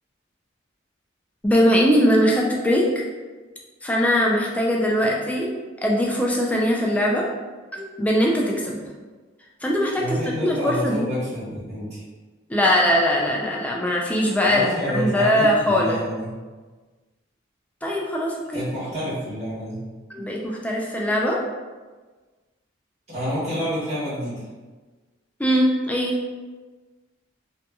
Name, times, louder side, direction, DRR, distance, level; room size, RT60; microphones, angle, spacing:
voice 1, 1.4-3.0 3.8-5.5 5.8-7.3 7.7-8.8 9.6-10.0 10.4-11.1 12.5-14.7 14.9-16.0 17.8-18.7 20.1-21.4 25.4-26.1, equal, 10° left, -2 dB, 0.3 m, -21 dB
voice 2, 10.0-12.0 14.4-16.3 18.5-19.8 23.1-24.4, equal, 35° right, -11 dB, 1.3 m, -28 dB
2.7 x 2.6 x 2.3 m, 1.3 s
head